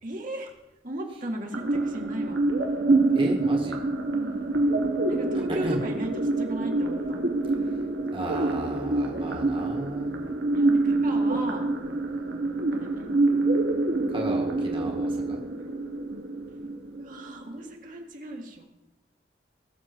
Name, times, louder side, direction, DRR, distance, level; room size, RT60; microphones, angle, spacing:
voice 1, 0.0-0.5 0.8-2.4 5.1-6.1 6.4-7.2 10.5-11.7 12.7-13.1 16.9-18.6, right 1 dB, 45° right, 1 dB, 1.9 m, -36 dB
sound 1, 1.5-17.5, right 2 dB, 70° right, 1.8 m, -26 dB
voice 2, 3.1-3.8 5.6-5.8 7.6-7.8 8.1-10.1 14.1-15.4, right 1 dB, 30° right, -1 dB, 1.8 m, -34 dB
20.5 x 7.1 x 4.5 m, 1.0 s
head